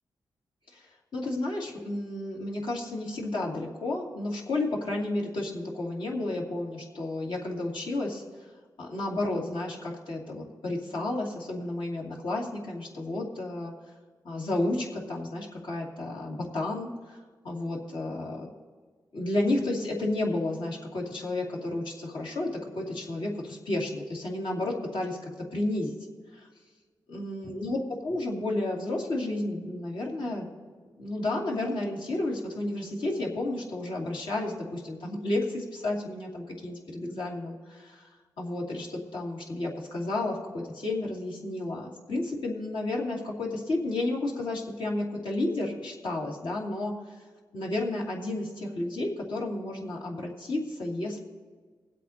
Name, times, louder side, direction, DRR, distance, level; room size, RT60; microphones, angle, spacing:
voice 1, 1.1-8.2 8.8-13.7 14.2-17.2 17.4-18.5 19.1-26.0 26.3-26.5 27.1-30.5 31.0-38.1 38.4-47.2 47.5-51.2, left 2 dB, 80° left, -2 dB, 2.6 m, -32 dB
22.5 x 8.2 x 2.9 m, 1.5 s
cardioid pair, 85°, 8 cm